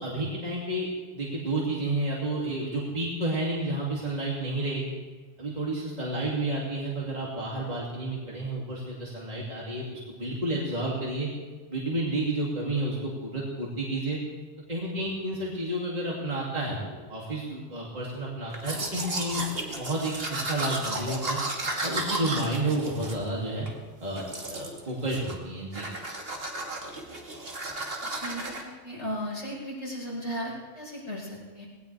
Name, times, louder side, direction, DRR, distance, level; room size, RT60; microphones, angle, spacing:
voice 1, 0.0-0.9 1.1-4.9 5.4-11.3 11.7-14.2 14.7-19.4 19.8-21.4 21.8-23.7 24.0-25.9, right 1 dB, 35° right, -5 dB, 2.8 m, -31 dB
Domestic sounds home sounds, 18.5-23.8 24.2-24.8 25.1-25.5 25.7-28.6, right 2 dB, 50° right, 2.1 m, -34 dB
voice 2, 28.2-31.7, equal, 80° left, -6 dB, 5.3 m, -36 dB
19.5 x 18.0 x 3.4 m, 1.4 s
omnidirectional pair, 1.3 m